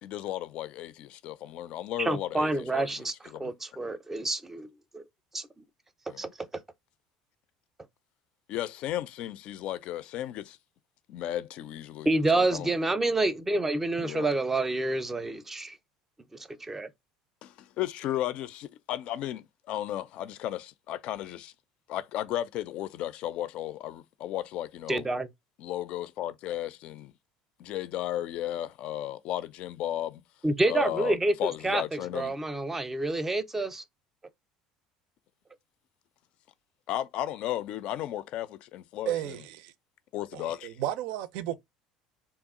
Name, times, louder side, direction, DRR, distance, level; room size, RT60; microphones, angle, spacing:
voice 1, 0.0-3.5 6.1-6.2 8.5-10.6 11.1-12.1 12.3-12.7 14.0-14.3 17.4-21.5 21.9-25.0 25.6-27.1 27.6-30.2 30.7-32.4 36.9-39.4 40.1-40.8, left 12 dB, 60° left, 0.4 m, -34 dB
voice 2, 2.0-3.1 3.4-4.7 4.9-5.0 5.3-5.5 6.2-6.3 12.1-15.8 16.6-16.9 24.9-25.3 30.4-31.4 31.6-33.8, right 2 dB, 15° right, 0.5 m, -28 dB
voice 3, 39.1-39.7 40.3-41.6, right 13 dB, 75° right, 0.4 m, -33 dB
2.9 x 2.3 x 3.6 m
supercardioid pair, 95°, 2 cm